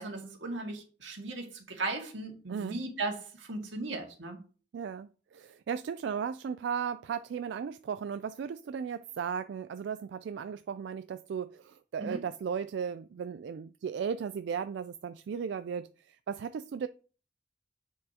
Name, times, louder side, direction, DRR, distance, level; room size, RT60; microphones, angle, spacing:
voice 1, 0.0-4.4 12.0-12.2, right 3 dB, 90° right, 1.9 m, -37 dB
voice 2, 4.7-16.9, right 7 dB, 65° right, 0.3 m, -36 dB
7.5 x 6.5 x 2.8 m
head